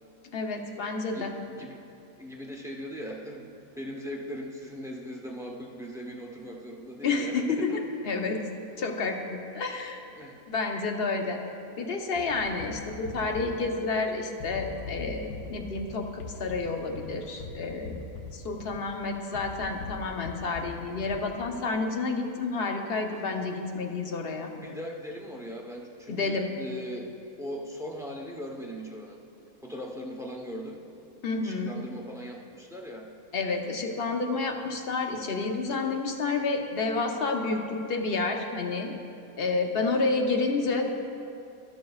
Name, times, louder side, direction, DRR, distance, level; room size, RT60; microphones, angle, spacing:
voice 1, 0.3-1.3 7.0-7.8 8.0-8.4 8.8-10.0 10.5-11.4 11.8-18.0 18.3-24.5 26.1-26.5 31.2-31.8 33.3-38.9 39.4-40.9, left 3 dB, 50° left, 3 dB, 0.8 m, -30 dB
voice 2, 1.1-1.8 2.2-7.7 10.1-10.4 24.6-27.1 27.4-29.2 29.6-30.8 31.4-33.1, equal, 5° right, -1 dB, 0.5 m, -39 dB
sound 1, 12.2-21.7, left 4 dB, 75° left, 1.3 m, -42 dB
12.5 x 11.5 x 2.4 m, 2.8 s
omnidirectional pair, 1.6 m